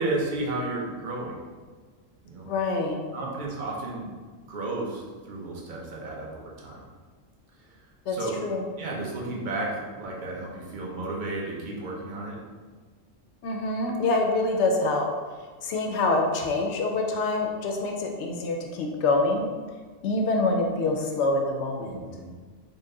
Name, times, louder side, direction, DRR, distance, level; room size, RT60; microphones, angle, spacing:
voice 1, 0.0-1.4 2.2-2.5 3.1-4.1 4.5-6.9 8.1-8.4 8.8-12.4 21.8-22.3, right 2 dB, 45° right, -3 dB, 0.8 m, -33 dB
voice 2, 2.4-3.0 8.1-8.6 13.4-15.1 15.6-19.5 20.0-22.0, left 2 dB, 70° left, 2 dB, 0.8 m, -26 dB
4.0 x 2.1 x 3.7 m, 1.5 s
omnidirectional pair, 1.3 m